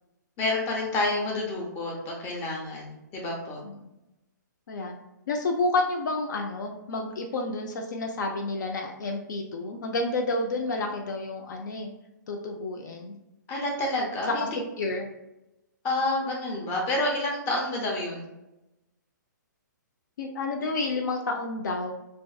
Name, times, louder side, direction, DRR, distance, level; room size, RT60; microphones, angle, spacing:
voice 1, 0.4-3.6 13.5-14.5 15.8-18.2, left 2 dB, 25° left, -1 dB, 0.7 m, -29 dB
voice 2, 5.3-11.9 12.3-13.2 14.4-14.5 14.8-15.1 20.2-21.9, left 2 dB, 65° left, 2 dB, 0.4 m, -30 dB
2.5 x 2.4 x 2.2 m, 0.93 s
hypercardioid pair, 140°, 11 cm